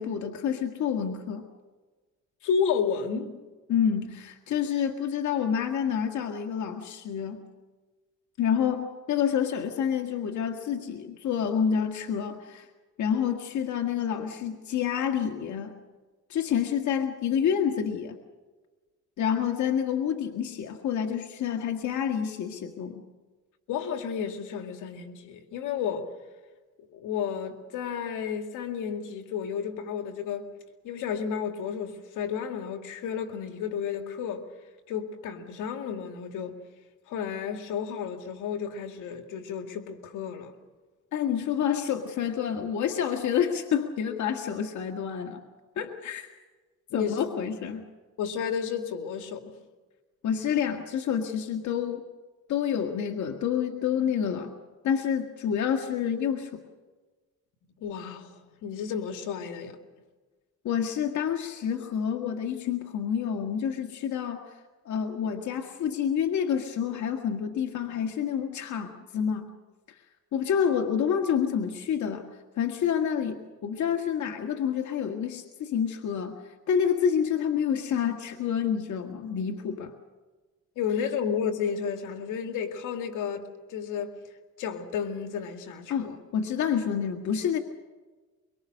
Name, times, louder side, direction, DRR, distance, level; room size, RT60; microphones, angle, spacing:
voice 1, 0.0-1.5 3.7-7.4 8.4-12.7 13.0-15.8 16.3-18.2 19.2-23.0 41.1-45.4 45.8-46.3 46.9-47.9 50.2-52.0 52.5-54.5 54.8-56.6 60.6-64.4 64.9-69.5 70.3-72.2 72.6-76.4 76.7-79.9 85.9-87.6, left 8 dB, 70° left, 1.8 m, -28 dB
voice 2, 2.4-3.4 23.7-26.1 26.9-30.5 30.8-34.5 34.9-36.6 37.1-40.5 46.9-47.3 48.2-49.5 57.8-59.8 80.8-84.2 84.6-86.2, left 7 dB, 90° left, 2.2 m, -32 dB
23.5 x 23.5 x 6.5 m
cardioid pair, 90°, 30 cm